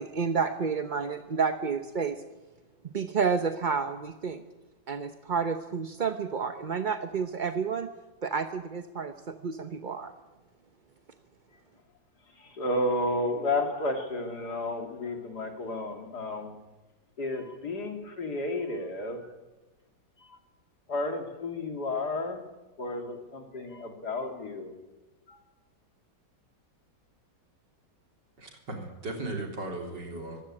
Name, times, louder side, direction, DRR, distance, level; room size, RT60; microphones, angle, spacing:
voice 1, 0.0-2.2 2.8-4.4 4.9-7.9 8.2-10.1, right 5 dB, 40° right, 8 dB, 0.7 m, -30 dB
voice 2, 12.4-16.6 17.2-19.3 20.3-20.4 20.9-22.4 22.8-24.7 25.3-25.4, left 2 dB, 60° left, 4 dB, 3.4 m, -32 dB
voice 3, 28.4-30.4, right 2 dB, 70° right, 2 dB, 4.2 m, -37 dB
23.0 x 16.5 x 8.8 m, 1.1 s
omnidirectional pair, 2.0 m